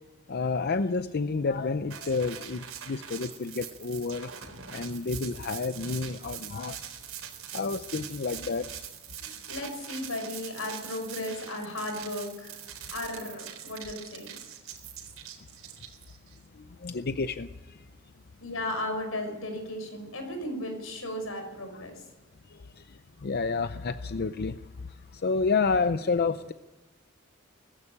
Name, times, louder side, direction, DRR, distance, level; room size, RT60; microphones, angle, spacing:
voice 1, 0.3-4.3 4.7-6.8 7.5-8.6 16.8-17.5 23.2-24.5 25.2-26.5, left 4 dB, 50° left, 11 dB, 0.6 m, -29 dB
sound 1, 1.9-16.4, right 10 dB, 90° right, 3.8 m, -43 dB
voice 2, 9.5-14.3 18.4-22.0, left 1 dB, 80° left, 5 dB, 5.9 m, -35 dB
19.5 x 15.5 x 8.6 m, 1.1 s
head